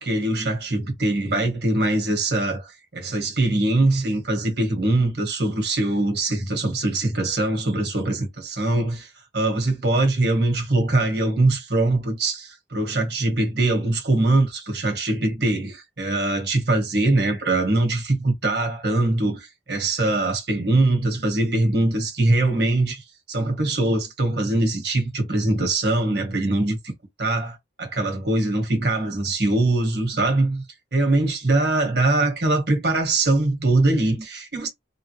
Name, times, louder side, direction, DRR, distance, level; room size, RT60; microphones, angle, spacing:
voice 1, 0.0-9.1 9.3-26.9 27.2-30.6 30.9-34.7, right 2 dB, 60° right, 1.5 m, -22 dB
3.5 x 2.4 x 3.2 m
head